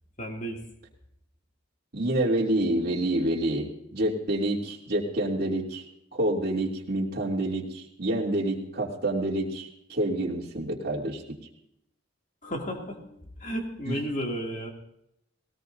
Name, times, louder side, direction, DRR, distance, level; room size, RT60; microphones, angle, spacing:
voice 1, 0.2-0.6 12.4-13.0 13.4-14.7, equal, 40° left, 1 dB, 2.6 m, -32 dB
voice 2, 1.9-5.8 6.1-11.4 13.9-14.0, right 1 dB, 50° right, -3 dB, 2.7 m, -28 dB
19.5 x 18.5 x 2.7 m, 0.81 s
head